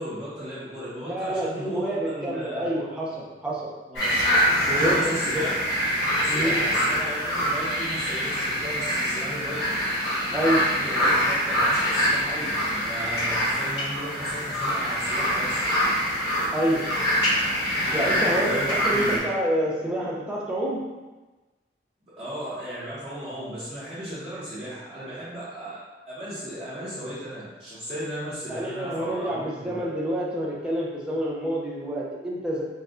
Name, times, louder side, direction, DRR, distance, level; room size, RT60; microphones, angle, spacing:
voice 1, 0.0-2.7 3.9-4.2 4.6-5.6 6.2-9.6 10.7-15.6 17.3-17.4 17.7-19.2 22.2-25.8 26.1-29.8, equal, 30° right, -13 dB, 0.9 m, -35 dB
voice 2, 1.1-3.7 4.7-5.5 6.3-6.6 10.3-10.7 11.0-11.2 16.5-16.9 17.9-20.9 28.5-32.6, right 1 dB, 5° right, -5 dB, 0.5 m, -28 dB
sound 1, 4.0-19.2, equal, 85° left, 1.0 m, -25 dB
4.2 x 2.2 x 2.5 m, 1.2 s
head